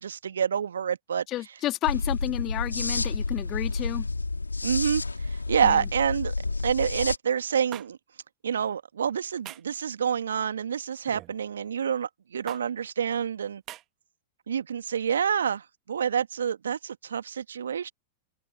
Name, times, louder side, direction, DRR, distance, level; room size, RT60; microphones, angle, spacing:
voice 1, 0.0-1.2 4.6-6.3 6.6-8.0 8.4-13.6 14.5-17.9, right 8 dB, 70° right, 1.6 m, -28 dB
voice 2, 1.3-4.1 5.6-5.9, left 15 dB, 35° left, 2.8 m, -31 dB
sound 1, 1.9-7.2, left 3 dB, 85° left, 2.5 m, -30 dB
sound 2, 7.7-7.9 9.4-9.7 11.0-11.3 12.5-12.6 13.7-13.8, right 15 dB, 35° right, 1.5 m, -41 dB
open air
figure-of-eight pair, 95°, 0 cm